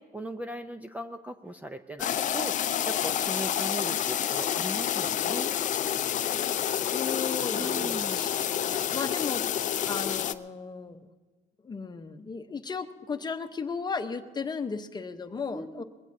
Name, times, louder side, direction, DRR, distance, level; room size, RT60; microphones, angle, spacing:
voice 1, 0.0-5.5 7.5-8.2 15.5-15.8, right 1 dB, 10° right, 8 dB, 0.5 m, -38 dB
sound 1, 2.0-10.3, left 10 dB, 50° left, 0.6 m, -29 dB
voice 2, 6.6-8.3 8.6-9.5 9.8-11.1 11.6-15.8, left 5 dB, 25° left, 7 dB, 0.9 m, -35 dB
21.5 x 16.0 x 2.7 m, 1.4 s
cardioid pair, 110°, 17 cm